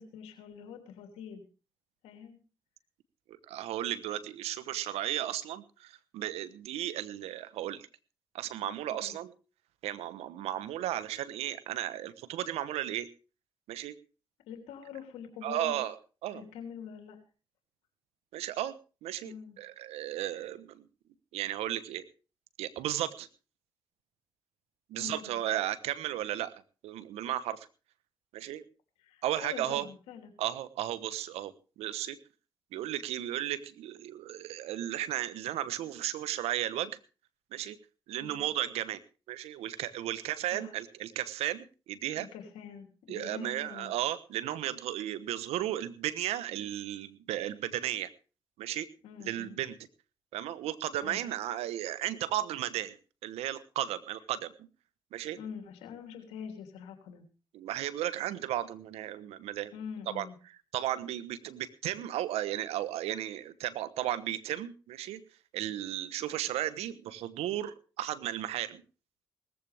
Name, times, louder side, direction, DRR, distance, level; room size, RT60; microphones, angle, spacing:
voice 1, 0.0-1.4 2.0-2.4 8.9-9.2 14.5-15.8 16.3-17.2 19.2-19.6 24.9-25.4 29.0-30.3 38.2-38.5 40.5-40.7 42.2-43.9 49.0-49.6 51.0-51.2 55.4-57.3 59.7-60.4, left 7 dB, 90° left, 4 dB, 3.1 m, -45 dB
voice 2, 3.3-7.9 8.3-9.3 9.8-13.1 13.7-13.9 15.4-16.0 16.2-16.4 18.3-18.7 19.0-20.8 21.3-22.0 22.6-23.3 24.9-27.7 28.3-28.6 29.2-29.9 30.4-32.2 32.7-36.9 37.5-37.8 38.1-39.0 39.3-42.3 43.1-48.1 48.6-48.9 49.2-49.8 50.3-53.0 53.2-54.5 55.1-55.4 57.5-59.7 60.1-60.3 60.7-65.2 65.5-68.8, right 12 dB, 85° right, 14 dB, 1.1 m, -34 dB
19.0 x 14.5 x 3.5 m, 0.35 s
supercardioid pair, 45°, 10 cm